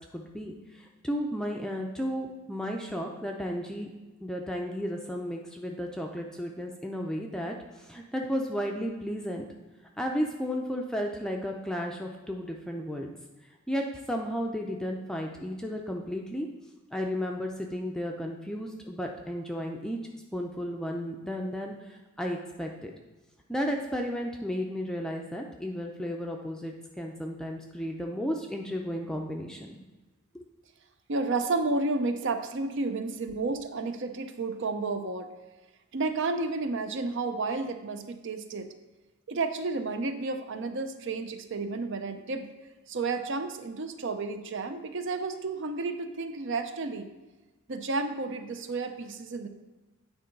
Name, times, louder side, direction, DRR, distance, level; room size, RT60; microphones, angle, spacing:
voice 1, 0.0-3.9 4.2-9.4 10.0-13.1 13.7-16.5 16.9-20.0 20.3-22.9 23.5-29.8 30.3-30.4, equal, 5° left, 1 dB, 0.5 m, -33 dB
voice 2, 31.1-35.3 35.9-38.7 39.3-42.5 42.9-47.1 47.7-49.5, right 3 dB, 55° right, 8 dB, 0.6 m, -31 dB
9.2 x 3.9 x 5.2 m, 1.2 s
head